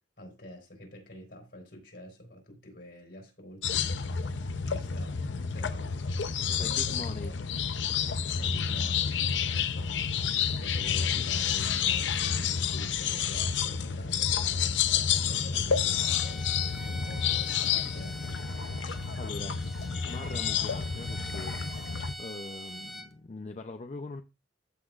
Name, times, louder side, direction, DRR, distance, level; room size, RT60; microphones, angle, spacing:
voice 1, 0.2-4.2 4.6-5.2 5.5-6.0 6.4-7.3 8.3-18.4, equal, 65° left, 3.8 m, -48 dB
sound 1, 3.6-22.1, left 7 dB, 80° left, 0.6 m, -29 dB
voice 2, 6.6-7.3 19.2-19.6 20.0-21.6 22.2-24.2, left 2 dB, 40° left, 0.6 m, -41 dB
Bowed string instrument, 15.7-23.1, equal, ahead, 0.7 m, -44 dB
14.0 x 6.0 x 2.4 m
head